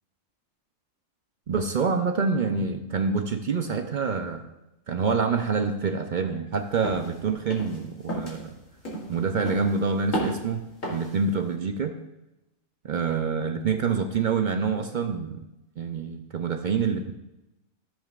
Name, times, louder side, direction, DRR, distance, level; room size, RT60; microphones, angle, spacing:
voice 1, 1.5-4.4 4.9-8.5 9.1-12.0 12.8-15.4 15.8-17.1, right 5 dB, 50° right, 6 dB, 0.6 m, -26 dB
sound 1, 6.8-7.1 7.5-7.8 8.1-8.4 8.9-9.2 9.5-9.8 10.1-10.5 10.8-11.1, equal, 80° left, 2.4 m, -32 dB
13.5 x 7.3 x 2.4 m, 0.94 s
omnidirectional pair, 1.3 m